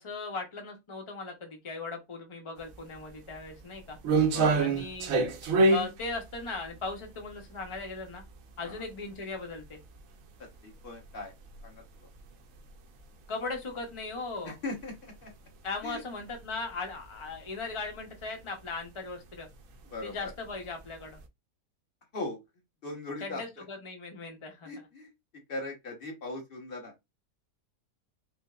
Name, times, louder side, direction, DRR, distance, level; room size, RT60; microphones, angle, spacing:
voice 1, 0.0-4.0 4.6-5.1 5.7-8.2 8.6-9.8 13.3-14.6 15.6-19.5 20.0-21.2 23.2-24.9, left 3 dB, 55° left, 0.3 m, -38 dB
sound 1, 2.7-2.8 3.3-8.3 8.7-8.8 9.5-9.7 10.0-10.1 11.0-11.1 11.4-11.6 12.1-12.3 12.6-12.7 14.8-14.9 16.2-16.5 16.9-17.3 17.7-17.9 18.2-18.3 19.3-19.5 20.2-20.9 21.2-21.3, right 3 dB, 70° right, 0.9 m, -26 dB
voice 2, 4.3-4.7 8.6-8.8 10.6-11.3 11.6-11.8 14.4-15.3 15.8-16.0 19.9-20.3 22.1-22.4 22.8-23.6 24.6-25.1 25.5-26.9, left 2 dB, 40° left, 1.1 m, -39 dB
4.8 x 2.0 x 2.3 m
omnidirectional pair, 1.6 m